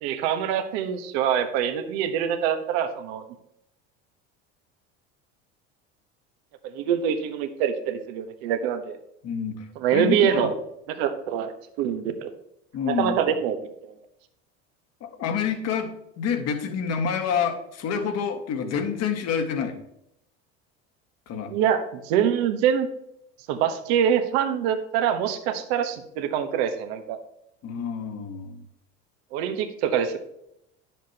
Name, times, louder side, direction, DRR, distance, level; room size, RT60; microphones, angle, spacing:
voice 1, 0.0-3.2 6.6-9.0 9.8-10.5 11.0-12.3 12.9-13.6 13.8-13.9 21.5-22.9 23.5-27.2 29.3-30.2, right 9 dB, 75° right, 8 dB, 1.2 m, -25 dB
voice 2, 9.2-10.5 12.7-13.2 15.0-19.8 21.3-21.5 27.6-28.7, left 6 dB, 55° left, 5 dB, 1.7 m, -28 dB
10.5 x 7.4 x 2.9 m, 0.78 s
supercardioid pair, 90°, 31 cm